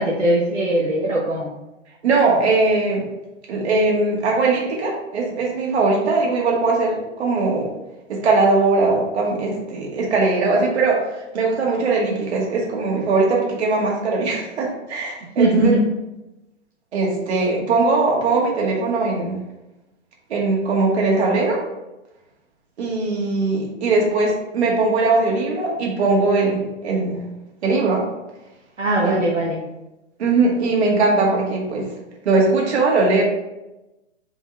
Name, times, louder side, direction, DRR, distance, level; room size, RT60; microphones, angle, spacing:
voice 1, 0.0-1.5 15.4-15.8 28.8-29.6, right 1 dB, 85° right, -3 dB, 1.2 m, -20 dB
voice 2, 2.0-3.0 3.5-7.7 8.1-15.7 16.9-19.4 20.3-21.6 22.8-27.2 27.6-28.0 29.0-29.3 30.2-31.9 32.3-33.2, right 3 dB, 60° right, -2 dB, 2.1 m, -20 dB
5.0 x 4.3 x 4.4 m, 0.96 s
figure-of-eight pair, 115°, 36 cm